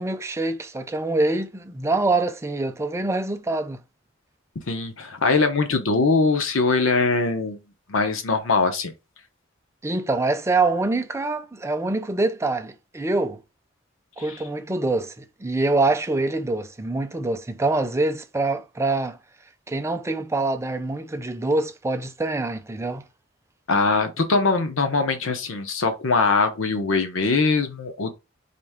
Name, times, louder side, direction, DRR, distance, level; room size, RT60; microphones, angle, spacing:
voice 1, 0.0-3.8 9.8-13.4 14.2-19.2 19.7-23.0, right 2 dB, 15° right, 0.5 m, -25 dB
voice 2, 4.7-7.6 7.9-8.9 23.7-28.1, left 3 dB, 80° left, 0.8 m, -22 dB
4.3 x 3.1 x 3.6 m
head